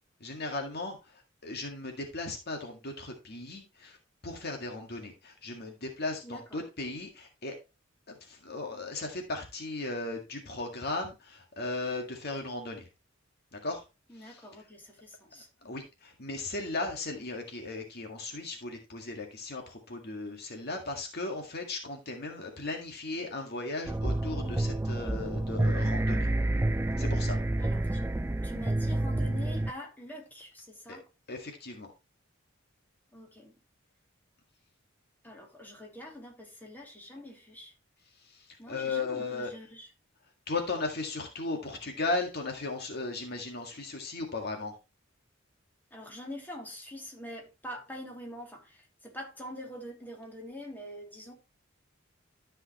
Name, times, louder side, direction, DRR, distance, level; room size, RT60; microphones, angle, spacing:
voice 1, 0.2-4.0 4.2-7.6 8.1-12.9 13.5-13.8 14.2-14.4 15.6-26.3 27.0-27.4 30.9-31.0 31.3-31.9 38.2-39.5 40.5-44.8, left 3 dB, 55° left, 1.8 m, -36 dB
voice 2, 6.2-6.6 14.1-15.5 27.5-28.1 28.4-31.0 33.1-33.5 35.2-37.7 38.6-39.9 45.9-51.3, equal, 10° left, 2.9 m, -45 dB
sound 1, 23.9-29.7, right 1 dB, 10° right, 0.4 m, -29 dB
13.0 x 5.6 x 3.1 m
head